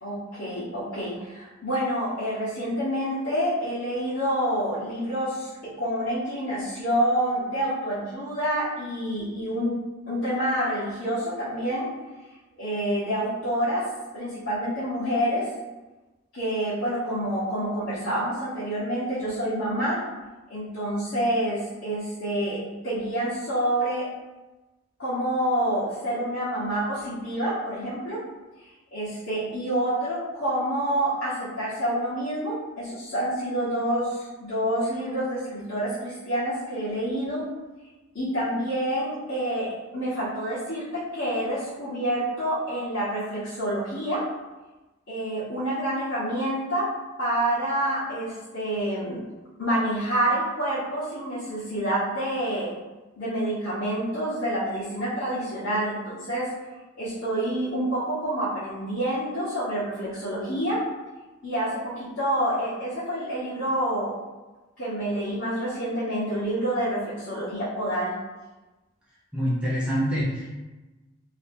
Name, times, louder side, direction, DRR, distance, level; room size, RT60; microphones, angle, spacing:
voice 1, 0.0-5.5 5.8-9.8 10.1-11.9 12.6-13.9 14.1-15.5 16.3-20.0 20.5-24.1 25.0-28.2 28.9-37.5 38.1-44.2 45.1-46.9 47.2-49.2 49.6-52.7 53.2-56.5 56.9-60.8 61.4-64.1 64.8-68.1, right 1 dB, 60° left, -13 dB, 1.2 m, -27 dB
voice 2, 69.3-70.6, equal, 5° right, -9 dB, 0.8 m, -26 dB
2.9 x 2.7 x 3.4 m, 1.1 s
head